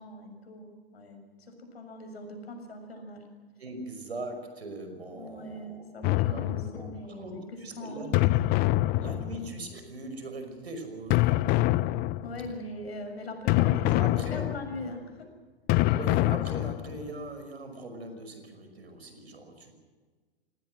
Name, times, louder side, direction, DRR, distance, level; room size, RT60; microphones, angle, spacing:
voice 1, 0.0-3.2 5.1-8.2 8.7-9.2 12.2-13.8 14.3-15.3 15.8-16.0, left 1 dB, 75° left, 5 dB, 6.6 m, -41 dB
voice 2, 3.6-6.0 6.3-8.4 9.0-11.7 13.8-14.5 15.9-19.7, right 2 dB, 85° right, 7 dB, 5.6 m, -41 dB
sound 1, 6.0-7.1 8.1-9.7 11.1-12.5 13.5-14.9 15.7-17.1, left 18 dB, 30° left, 0.6 m, -25 dB
28.0 x 19.0 x 6.3 m, 1.4 s
hypercardioid pair, 110°, 31 cm